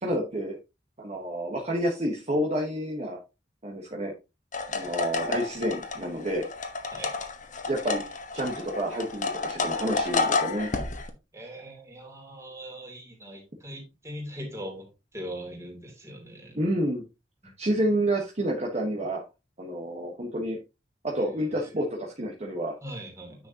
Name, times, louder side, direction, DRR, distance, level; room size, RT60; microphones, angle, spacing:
voice 1, 0.0-0.6 1.0-3.2 3.6-4.1 4.7-6.5 7.7-10.7 16.5-17.0 17.6-19.2 19.6-20.6 21.0-22.7, right 1 dB, 40° right, -1 dB, 1.4 m, -29 dB
sound 1, 4.5-11.1, left 3 dB, 45° left, 1.2 m, -30 dB
voice 2, 11.3-14.9 15.1-16.6 22.8-23.5, equal, 15° right, 1 dB, 2.9 m, -40 dB
9.6 x 6.3 x 2.9 m, 0.27 s
head